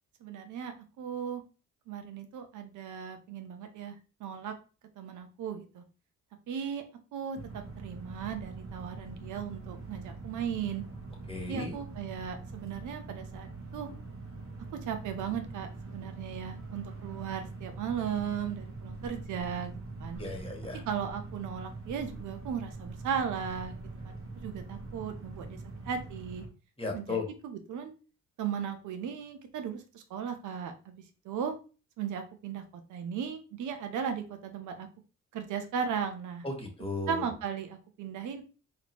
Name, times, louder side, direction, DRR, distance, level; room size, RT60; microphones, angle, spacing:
voice 1, 0.2-1.4 1.9-4.5 5.0-5.8 6.5-6.8 7.1-10.8 11.5-13.9 14.7-19.7 20.0-20.2 20.9-23.7 24.0-25.6 25.8-26.4 26.9-27.9 28.4-31.5 32.0-32.6 32.9-34.9 35.3-36.5 37.1-38.4, right 7 dB, 80° right, 7 dB, 0.9 m, -36 dB
sound 1, 7.3-26.5, right 3 dB, 45° right, 1.3 m, -43 dB
voice 2, 11.3-11.8 20.2-20.8 26.8-27.3 36.4-37.3, left 3 dB, 20° left, 1 dB, 1.5 m, -35 dB
4.2 x 3.2 x 3.0 m, 0.35 s
cardioid pair, 90°, 30 cm